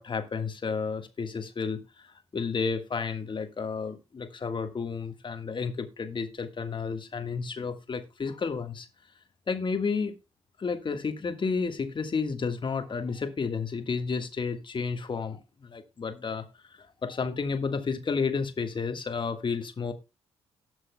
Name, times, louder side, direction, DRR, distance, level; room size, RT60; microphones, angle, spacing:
voice 1, 0.0-8.9 9.5-10.1 10.6-19.9, left 5 dB, 40° left, 1.5 m, -31 dB
18.5 x 6.3 x 2.2 m
figure-of-eight pair, 40°, 13 cm